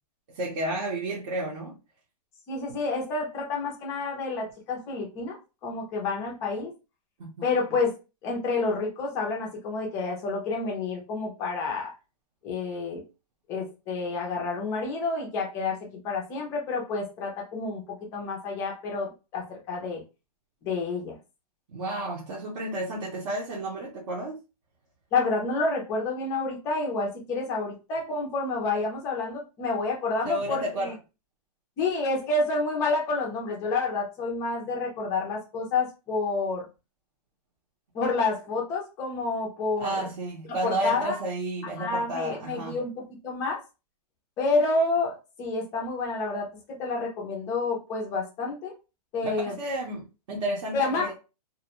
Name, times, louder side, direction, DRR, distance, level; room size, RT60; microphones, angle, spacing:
voice 1, 0.3-1.8 7.2-7.5 21.7-24.4 30.2-30.9 39.8-42.8 49.2-51.2, right 1 dB, 50° right, 0.7 m, -32 dB
voice 2, 2.5-5.4 5.6-6.7 7.4-8.0 8.2-11.9 12.4-13.0 13.5-20.0 20.6-21.1 25.1-30.9 31.8-36.7 37.9-40.0 40.6-41.2 41.8-43.6 44.4-46.5 46.8-48.7 49.1-49.5 50.7-51.1, left 3 dB, 15° left, 0.4 m, -29 dB
2.4 x 2.1 x 2.8 m
hypercardioid pair, 170°, 21 cm